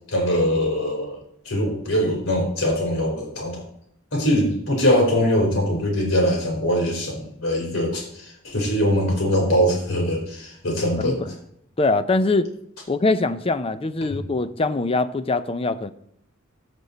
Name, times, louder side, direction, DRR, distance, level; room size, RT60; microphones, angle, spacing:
voice 1, 0.1-1.2 1.4-3.7 4.1-11.2 14.1-14.2, equal, 75° left, 3.7 m, -22 dB
voice 2, 11.0-11.3 11.8-12.5 12.9-15.9, left 3 dB, 25° left, 0.5 m, -23 dB
14.5 x 5.3 x 4.1 m
head